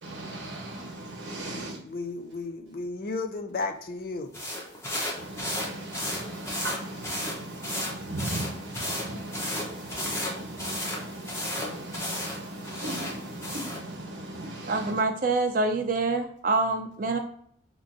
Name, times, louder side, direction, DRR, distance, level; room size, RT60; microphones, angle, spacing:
voice 1, 0.0-1.8 5.1-15.0, right 1 dB, 70° right, 1.0 m, -38 dB
voice 2, 1.4-4.4, left 3 dB, 50° left, 0.4 m, -34 dB
sound 1, 4.3-13.8, left 1 dB, 15° left, 0.7 m, -34 dB
voice 3, 14.7-17.2, right 3 dB, 45° right, 0.5 m, -26 dB
4.5 x 2.5 x 2.5 m
head